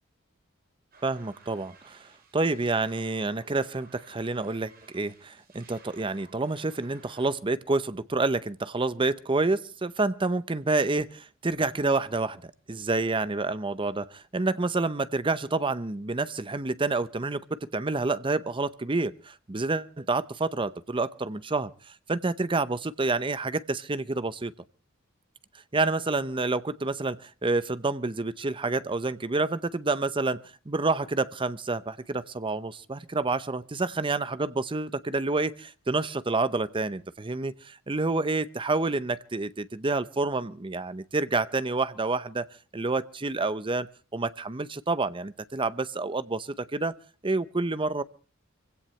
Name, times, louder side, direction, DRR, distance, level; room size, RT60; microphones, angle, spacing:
sound 1, 0.9-7.3, right 4 dB, 50° right, 4.2 m, -56 dB
voice 1, 1.0-21.7 22.1-24.5 25.7-42.5 42.7-43.9 44.1-46.9 47.2-48.0, right 3 dB, 25° right, 0.7 m, -28 dB
25.0 x 16.5 x 3.2 m
head